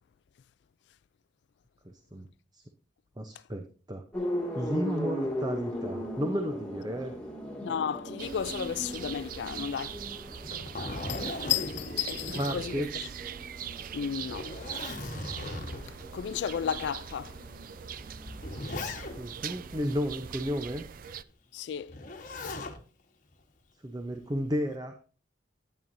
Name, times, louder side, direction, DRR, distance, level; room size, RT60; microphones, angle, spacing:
voice 1, 1.8-2.3 2.5-2.6 3.2-4.0 4.5-7.1 12.3-13.2 19.2-20.8 23.8-24.9, equal, 20° right, 0.7 m, -33 dB
sound 1, 4.1-20.0, equal, 5° left, 2.3 m, -39 dB
voice 2, 7.6-10.0 11.1-12.9 13.9-14.6 15.9-17.4 21.5-22.0, left 8 dB, 65° left, 0.3 m, -33 dB
sound 2, 8.2-21.2, right 8 dB, 45° right, 0.4 m, -42 dB
Zipper (clothing), 10.3-13.2 13.6-13.7 14.2-16.0 16.8-16.9 17.9-19.4 21.9-22.8 24.2-24.6, left 2 dB, 45° left, 1.3 m, -38 dB
11.5 x 9.0 x 2.6 m
head